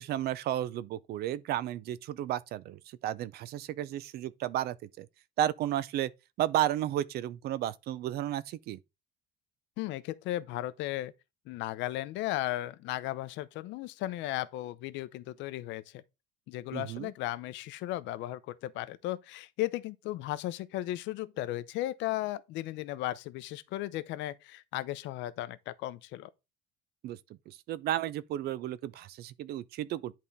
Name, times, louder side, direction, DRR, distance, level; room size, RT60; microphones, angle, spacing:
voice 1, 0.0-5.1 5.4-6.1 6.4-8.8 16.7-17.1 27.0-27.2 27.5-30.1, right 12 dB, 50° right, 0.5 m, -33 dB
voice 2, 9.8-11.1 11.5-16.0 16.5-26.3, left 15 dB, 65° left, 0.7 m, -35 dB
10.5 x 3.7 x 4.0 m
cardioid pair, 150°, 20 cm